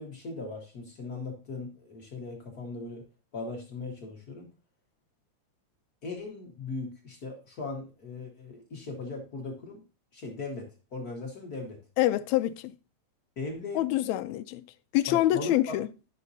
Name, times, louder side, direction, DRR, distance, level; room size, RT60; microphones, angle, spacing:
voice 1, 0.0-3.0 3.3-4.5 6.0-9.8 10.1-11.8 13.4-13.8 15.1-15.8, left 3 dB, 50° left, 1.1 m, -38 dB
voice 2, 12.0-12.7 13.7-14.6 14.9-15.9, left 14 dB, 80° left, 1.7 m, -26 dB
10.5 x 6.0 x 2.7 m
omnidirectional pair, 3.5 m